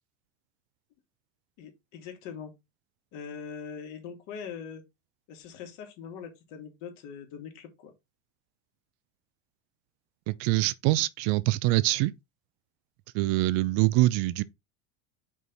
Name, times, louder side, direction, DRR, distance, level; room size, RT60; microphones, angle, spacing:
voice 1, 1.6-2.5 3.1-4.8 5.3-7.9, left 7 dB, 55° left, 2.6 m, -42 dB
voice 2, 10.3-12.1 13.1-14.4, right 18 dB, 55° right, 0.6 m, -24 dB
5.6 x 4.7 x 3.8 m
supercardioid pair, 130°, 36 cm